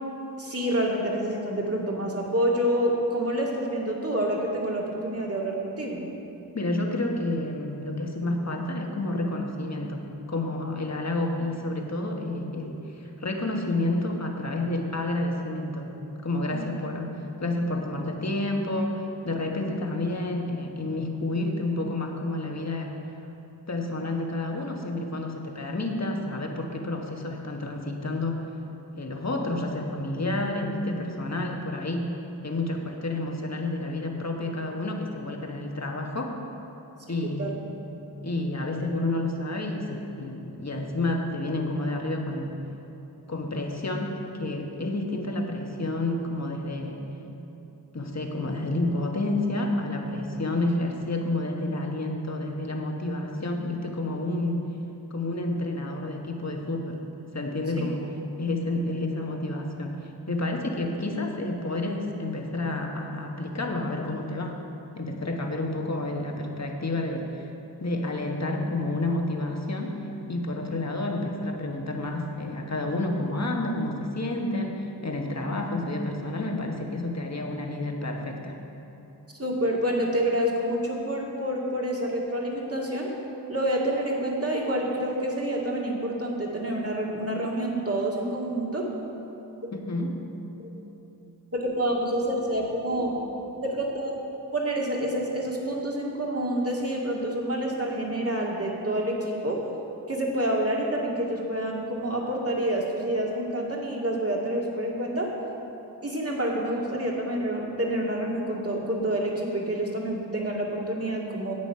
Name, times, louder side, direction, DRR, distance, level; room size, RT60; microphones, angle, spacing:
voice 1, 0.4-6.0 16.5-16.7 37.4-37.5 79.4-83.1 83.5-88.9 90.6-90.7 91.5-93.2 93.6-94.2 94.5-99.7 100.1-105.3 106.0-111.5, right 1 dB, 30° right, -2 dB, 2.1 m, -28 dB
voice 2, 6.5-10.0 10.3-15.9 16.2-17.1 17.4-23.0 23.7-28.4 29.0-32.0 32.4-36.4 37.1-37.6 38.2-42.5 43.3-44.1 44.4-47.0 47.9-54.7 55.1-57.0 57.3-58.1 58.4-64.6 64.9-67.5 67.8-78.5 89.7-90.2, left 2 dB, 40° left, 2 dB, 1.4 m, -30 dB
11.0 x 8.3 x 5.7 m, 2.9 s
cardioid pair, 50°, 44 cm